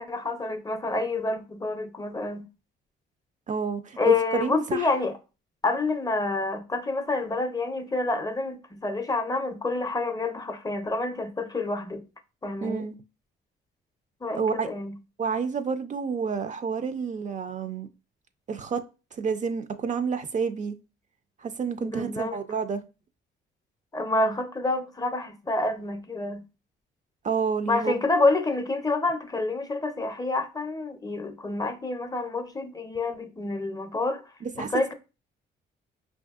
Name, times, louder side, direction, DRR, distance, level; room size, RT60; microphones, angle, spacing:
voice 1, 0.0-2.5 4.0-5.1 5.6-12.0 12.4-12.9 14.2-14.9 21.8-22.4 23.9-26.4 27.7-34.2 34.6-34.9, left 3 dB, 20° left, 0.5 m, -28 dB
voice 2, 3.5-4.9 12.6-13.0 14.3-14.7 15.2-17.9 18.5-18.8 19.1-20.7 21.4-22.8 27.2-27.9 34.6-34.8, right 5 dB, 40° right, 0.4 m, -29 dB
5.1 x 2.6 x 2.3 m
cardioid pair, 90°, 20 cm